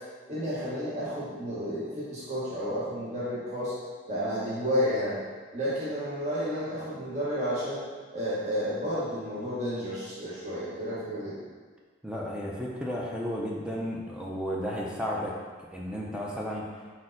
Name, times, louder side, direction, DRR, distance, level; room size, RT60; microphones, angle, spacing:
voice 1, 0.3-3.7 4.1-5.2 5.5-7.8 8.1-11.5, equal, 40° right, -9 dB, 0.9 m, -31 dB
voice 2, 12.0-15.3 15.6-16.6, equal, 5° right, -3 dB, 0.4 m, -33 dB
4.3 x 4.1 x 2.5 m, 1.5 s
head